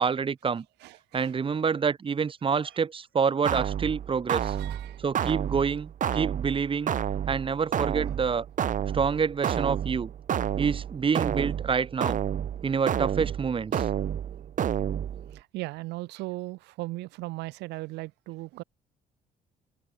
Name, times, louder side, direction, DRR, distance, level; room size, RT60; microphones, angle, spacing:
voice 1, 0.0-0.6 1.1-4.5 5.0-6.9 7.3-8.5 8.9-10.1 10.6-12.2 12.6-13.9, right 6 dB, 30° right, 1.7 m, -27 dB
voice 2, 0.8-1.3 2.6-2.7 4.4-5.0 8.0-8.2 15.3-18.6, right 20 dB, 90° right, 3.1 m, -38 dB
sound 1, 3.4-15.4, right 9 dB, 50° right, 2.7 m, -30 dB
cardioid pair, 110°, 17 cm